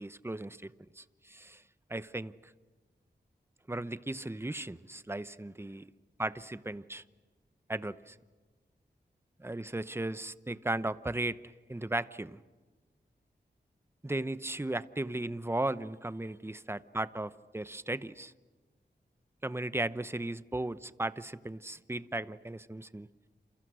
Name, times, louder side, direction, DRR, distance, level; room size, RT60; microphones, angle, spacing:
voice 1, 0.0-1.6 1.9-2.5 3.7-5.8 6.2-7.0 7.7-8.2 9.4-12.4 14.0-18.3 19.4-23.1, right 2 dB, 15° right, 14 dB, 0.9 m, -36 dB
29.0 x 28.0 x 6.3 m, 1.3 s
wide cardioid pair, 65°, 18 cm